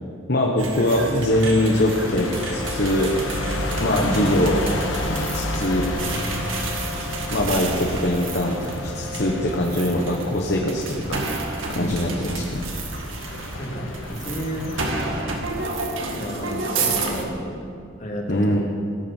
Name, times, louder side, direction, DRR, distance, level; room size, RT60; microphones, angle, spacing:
voice 1, 0.3-3.1 3.8-4.6 5.2-5.9 7.3-11.2 11.7-12.7 18.3-18.6, left 1 dB, 55° left, -1 dB, 1.3 m, -22 dB
sound 1, 0.6-17.3, right 3 dB, 80° right, 1.9 m, -31 dB
sound 2, 1.3-14.9, left 1 dB, 80° left, 1.5 m, -31 dB
sound 3, 1.9-10.9, left 2 dB, 20° right, 1.0 m, -38 dB
voice 2, 11.7-12.0 13.6-15.2 16.2-17.6 18.0-18.6, equal, 40° left, -1 dB, 2.5 m, -32 dB
17.5 x 8.6 x 7.3 m, 2.4 s
head